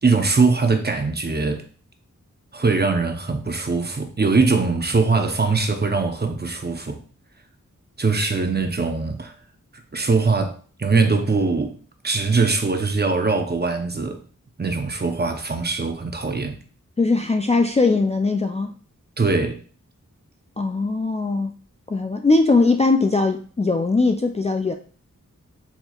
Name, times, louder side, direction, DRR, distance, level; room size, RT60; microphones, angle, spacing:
voice 1, 0.0-1.6 2.5-7.0 8.0-9.3 9.9-11.8 12.0-14.2 14.6-16.6 19.2-19.6, right 4 dB, 30° right, 0.6 m, -21 dB
voice 2, 17.0-18.7 20.6-21.5 21.9-24.8, left 3 dB, 20° left, 0.3 m, -20 dB
4.3 x 2.8 x 2.3 m
cardioid pair, 40°, 32 cm